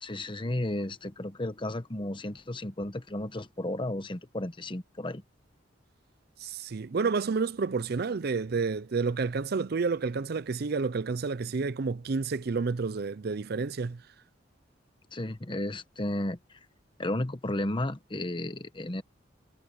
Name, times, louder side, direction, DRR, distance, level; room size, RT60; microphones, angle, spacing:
voice 1, 0.0-5.2 15.1-16.6 17.0-19.0, left 1 dB, 25° left, 1.1 m, -33 dB
voice 2, 6.4-14.0, right 4 dB, 55° right, 0.5 m, -30 dB
head